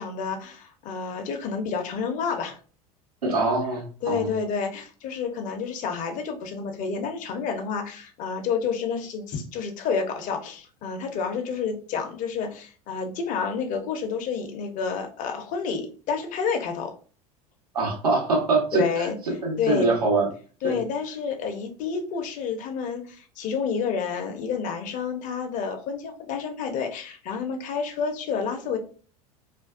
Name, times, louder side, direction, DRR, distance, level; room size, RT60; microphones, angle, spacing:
voice 1, 0.0-2.6 4.0-16.9 18.7-19.1 19.6-19.9 20.6-28.8, left 6 dB, 40° left, 5 dB, 0.6 m, -29 dB
voice 2, 3.2-4.3 17.7-18.8 19.4-20.3 20.6-20.8, right 3 dB, 85° right, -2 dB, 1.0 m, -23 dB
2.5 x 2.2 x 2.3 m, 0.39 s
hypercardioid pair, 80°, 19 cm